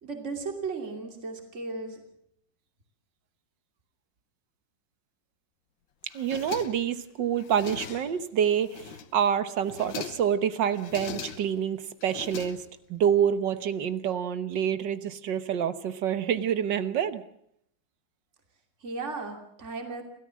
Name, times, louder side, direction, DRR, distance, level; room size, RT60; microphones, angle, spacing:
voice 1, 0.0-2.0 18.8-20.0, right 4 dB, 40° right, 4 dB, 3.1 m, -35 dB
voice 2, 6.0-17.2, right 8 dB, 70° right, 12 dB, 1.8 m, -27 dB
sound 1, 6.1-7.0 7.4-8.2 8.6-9.2 9.6-10.4 10.7-11.6 12.0-13.0, left 7 dB, 85° left, 2.0 m, -41 dB
30.0 x 13.5 x 7.5 m, 0.72 s
omnidirectional pair, 2.0 m